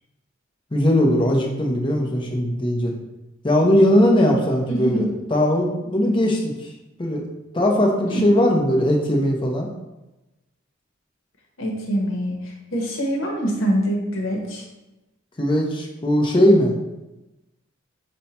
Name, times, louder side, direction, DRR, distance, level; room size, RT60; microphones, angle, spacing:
voice 1, 0.7-2.9 3.4-6.7 7.0-7.2 7.5-9.7 15.4-16.7, left 1 dB, 25° left, 0 dB, 0.7 m, -19 dB
voice 2, 4.7-5.1 8.1-8.2 11.6-14.6, right 1 dB, 75° left, 1 dB, 0.9 m, -24 dB
5.3 x 2.2 x 4.2 m, 1.0 s
head